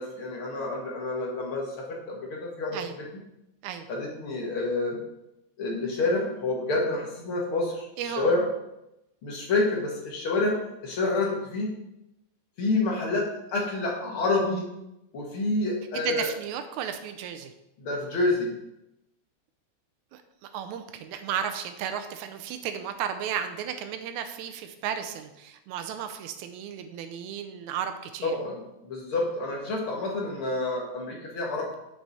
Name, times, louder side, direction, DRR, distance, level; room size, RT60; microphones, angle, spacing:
voice 1, 0.0-2.9 3.9-5.0 5.6-8.4 9.2-10.6 10.8-11.7 12.6-14.7 15.1-16.3 17.8-18.6 28.2-31.7, left 2 dB, 50° left, -1 dB, 2.2 m, -28 dB
voice 2, 8.0-8.3 15.9-17.5 20.1-20.2 20.5-28.3, right 8 dB, 85° right, 7 dB, 2.0 m, -34 dB
7.9 x 6.3 x 4.1 m, 0.87 s
omnidirectional pair, 3.3 m